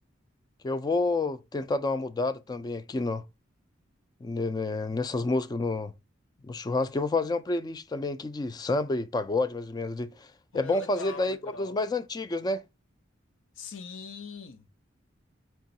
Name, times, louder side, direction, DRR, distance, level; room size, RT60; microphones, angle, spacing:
voice 1, 0.6-3.2 4.2-5.9 6.4-10.3 10.5-12.6, left 2 dB, 20° left, 0.3 m, -29 dB
voice 2, 10.5-11.8 13.6-14.7, left 4 dB, 80° left, 0.6 m, -41 dB
4.5 x 3.0 x 2.7 m
head